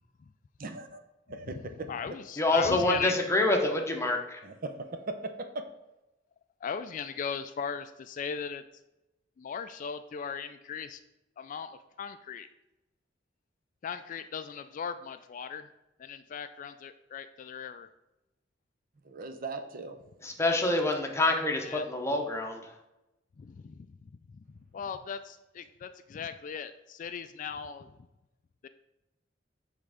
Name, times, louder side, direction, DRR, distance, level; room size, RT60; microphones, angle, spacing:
voice 1, 0.6-1.0 1.3-1.9 4.4-4.7 5.1-5.2 5.5-5.6 19.0-20.0, right 3 dB, 50° right, 6 dB, 0.7 m, -38 dB
voice 2, 1.4-3.1 6.6-8.6 9.4-11.0 11.4-12.5 13.8-15.7 16.0-17.9 21.6-21.9 23.4-28.0 28.6-28.7, left 6 dB, 45° left, 11 dB, 0.3 m, -38 dB
voice 3, 2.4-4.4 20.2-22.7, left 2 dB, 15° left, 2 dB, 0.9 m, -27 dB
7.6 x 3.6 x 4.9 m, 0.96 s
head